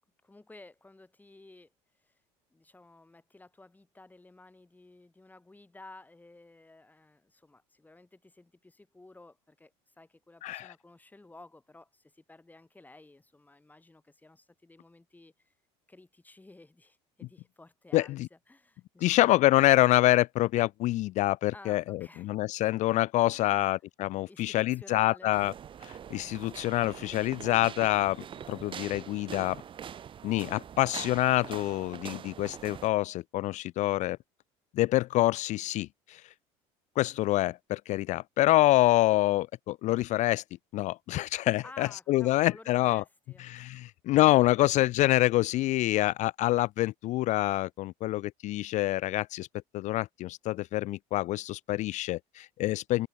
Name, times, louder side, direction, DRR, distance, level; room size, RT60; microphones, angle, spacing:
voice 1, 0.2-1.7 2.0-2.1 2.5-15.5 15.9-19.3 21.5-22.3 23.3-23.7 24.3-25.3 41.6-43.4, left 2 dB, 10° left, 4.8 m, -54 dB
voice 2, 10.4-10.7 17.9-18.3 19.0-25.5 25.8-29.6 30.2-34.2 34.8-36.2 37.0-40.4 40.7-43.0 43.4-49.5 49.7-53.1, left 17 dB, 55° left, 0.4 m, -26 dB
sound 1, 25.3-32.9, right 9 dB, 35° right, 0.8 m, -44 dB
supercardioid pair, 100°, 15 cm